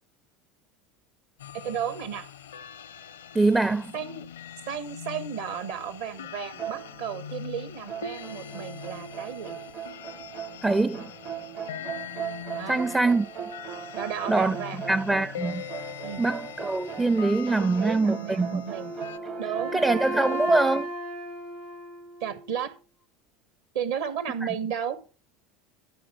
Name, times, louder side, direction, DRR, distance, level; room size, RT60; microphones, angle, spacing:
sound 1, 1.4-19.2, left 9 dB, 70° left, 0.6 m, -42 dB
voice 1, 1.5-2.3 3.9-4.2 4.7-9.6 12.5-12.8 13.9-14.8 16.0-16.2 17.6-18.9 19.4-20.5 22.2-22.7 23.7-25.0, right 8 dB, 65° right, 1.5 m, -34 dB
voice 2, 3.3-3.9 10.6-11.1 12.7-13.3 14.3-15.7 16.2-18.7 19.7-20.9, right 2 dB, 10° right, 0.5 m, -24 dB
sound 2, 6.6-7.4 7.9-20.1, right 8 dB, 40° right, 0.9 m, -39 dB
Wind instrument woodwind instrument, 18.7-22.7, right 1 dB, 85° right, 2.4 m, -34 dB
13.0 x 4.8 x 5.9 m
figure-of-eight pair, 70°, 0 cm